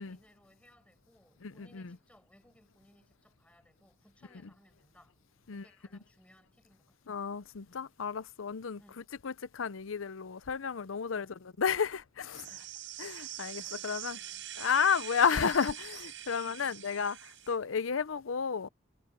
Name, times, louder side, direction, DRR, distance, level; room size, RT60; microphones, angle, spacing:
voice 1, 0.0-5.2 5.5-7.0 8.8-9.0 11.1-11.3 12.5-12.7 13.6-14.5, equal, 5° left, 6.6 m, -64 dB
voice 2, 1.4-2.0 5.5-5.6 7.1-12.5 13.0-14.2 14.6-18.7, left 6 dB, 85° left, 0.6 m, -32 dB
sound 1, 12.3-17.6, right 12 dB, 70° right, 4.1 m, -44 dB
head